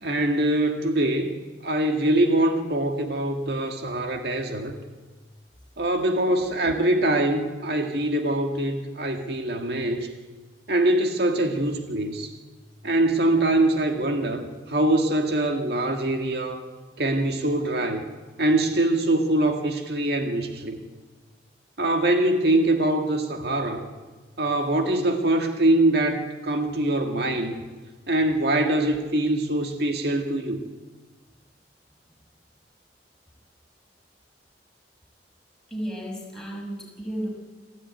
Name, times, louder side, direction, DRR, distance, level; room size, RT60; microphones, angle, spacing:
voice 1, 0.0-1.4 1.6-4.7 5.8-10.1 10.7-12.3 12.8-16.6 17.0-18.0 18.4-20.8 21.8-23.8 24.4-27.5 28.1-30.6, right 1 dB, 65° right, 4 dB, 1.9 m, -23 dB
voice 2, 35.7-37.3, equal, 5° left, -3 dB, 6.1 m, -33 dB
26.5 x 15.0 x 9.3 m, 1.3 s
head